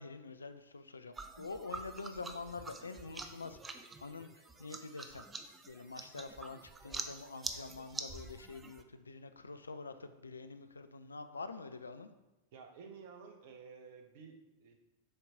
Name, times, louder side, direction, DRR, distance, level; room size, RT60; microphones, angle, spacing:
voice 1, 0.0-12.1, left 4 dB, 75° left, 10 dB, 0.4 m, -46 dB
sound 1, 1.1-8.8, right 3 dB, 15° right, 0.5 m, -46 dB
voice 2, 12.5-14.8, right 5 dB, 50° right, 4 dB, 0.9 m, -53 dB
6.6 x 4.6 x 3.7 m, 1.0 s
figure-of-eight pair, 90°, 0 cm